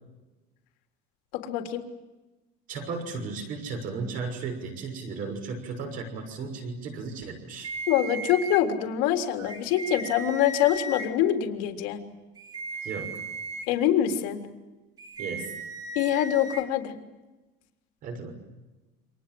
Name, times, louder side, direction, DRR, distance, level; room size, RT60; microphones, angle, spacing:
voice 1, 1.3-1.8 7.9-12.0 13.7-14.4 16.0-16.9, left 10 dB, 70° left, 5 dB, 3.5 m, -25 dB
voice 2, 2.7-7.7 12.8-13.2 15.2-15.5 18.0-18.3, right 4 dB, 45° right, 5 dB, 6.2 m, -35 dB
sound 1, 7.6-8.6 9.4-11.1 12.4-13.7 15.0-16.6, right 2 dB, 20° right, 3.3 m, -36 dB
29.0 x 26.0 x 7.8 m, 1.1 s
cardioid pair, 180°, 20 cm